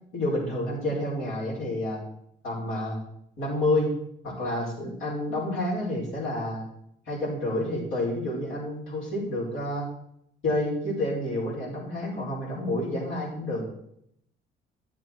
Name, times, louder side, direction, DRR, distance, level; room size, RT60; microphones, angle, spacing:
voice 1, 0.1-2.0 2.4-3.0 3.4-3.9 4.2-6.6 7.1-9.9 10.4-13.6, left 1 dB, 90° left, -4 dB, 4.9 m, -29 dB
12.0 x 7.4 x 4.6 m, 0.73 s
cardioid pair, 90°, 20 cm